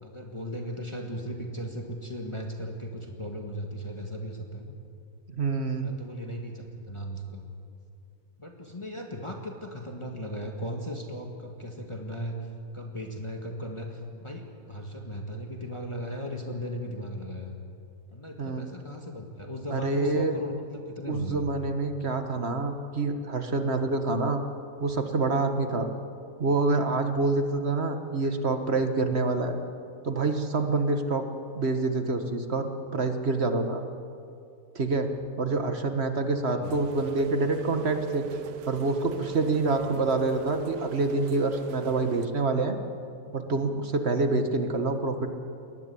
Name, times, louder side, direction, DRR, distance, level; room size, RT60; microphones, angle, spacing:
voice 1, 0.0-4.8 5.8-7.5 8.4-12.4 12.7-17.5 18.1-21.5 36.6-36.7, equal, 20° left, 2 dB, 1.8 m, -37 dB
voice 2, 5.3-6.0 18.4-18.7 19.7-20.4 21.1-24.4 24.8-25.9 26.4-29.6 30.0-31.3 31.5-33.8 34.7-35.1 35.4-38.3 38.7-42.8 43.3-45.3, right 3 dB, 45° right, 7 dB, 1.7 m, -27 dB
Rain, 36.6-42.3, right 10 dB, 85° right, 1.3 m, -37 dB
21.5 x 19.0 x 8.5 m, 2.5 s
omnidirectional pair, 1.5 m